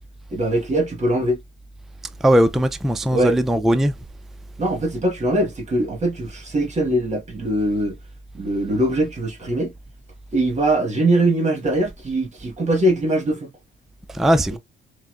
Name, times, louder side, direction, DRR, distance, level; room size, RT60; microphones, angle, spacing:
voice 1, 0.3-1.4 3.1-3.4 4.6-8.0 8.3-9.7 10.3-13.5, right 1 dB, 35° right, 1.3 m, -21 dB
voice 2, 2.2-3.9 14.1-14.6, equal, ahead, 0.4 m, -18 dB
5.6 x 2.1 x 2.3 m
cardioid pair, 90°, 20 cm